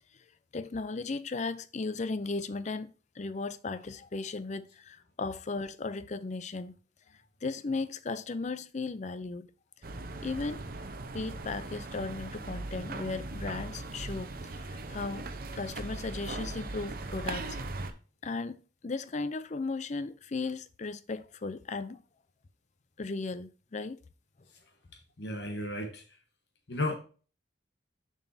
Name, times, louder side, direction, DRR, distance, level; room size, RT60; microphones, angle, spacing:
voice 1, 0.5-6.7 7.4-9.5 10.2-10.6 11.1-14.3 14.6-15.3 15.5-17.6 18.2-22.0 23.0-24.0, left 3 dB, 35° left, 0.4 m, -36 dB
sound 1, 9.8-17.9, right 2 dB, 50° right, 0.8 m, -39 dB
voice 2, 25.2-26.0 26.7-27.0, left 2 dB, 60° left, 1.2 m, -33 dB
7.2 x 6.0 x 2.7 m
head